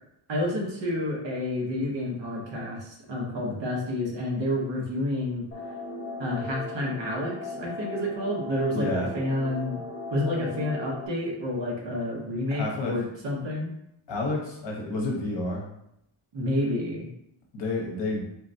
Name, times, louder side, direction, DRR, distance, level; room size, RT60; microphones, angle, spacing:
voice 1, 0.3-5.4 6.2-9.8 10.1-13.7 16.3-17.1, left 1 dB, 60° right, -1 dB, 0.8 m, -29 dB
sound 1, 5.5-11.1, left 2 dB, 30° left, 0.6 m, -37 dB
voice 2, 8.7-9.1 12.5-13.0 14.1-15.7 17.5-18.2, left 2 dB, 60° left, -2 dB, 0.9 m, -30 dB
3.8 x 2.1 x 2.6 m, 0.80 s
wide cardioid pair, 175°, 50 cm